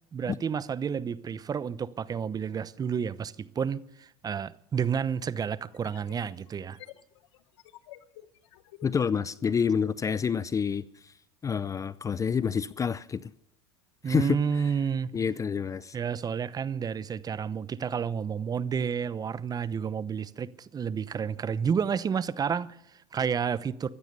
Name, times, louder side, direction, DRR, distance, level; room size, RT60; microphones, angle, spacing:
voice 1, 0.1-6.8 14.0-15.1 15.9-23.9, right 7 dB, 25° right, 0.9 m, -30 dB
sound 1, 4.2-4.3 5.6-9.6, left 13 dB, 85° left, 1.1 m, -52 dB
voice 2, 8.8-11.1 11.4-13.3 14.1-14.4 15.1-16.0, left 6 dB, 20° left, 0.5 m, -28 dB
15.5 x 13.0 x 6.8 m
supercardioid pair, 100°, 14 cm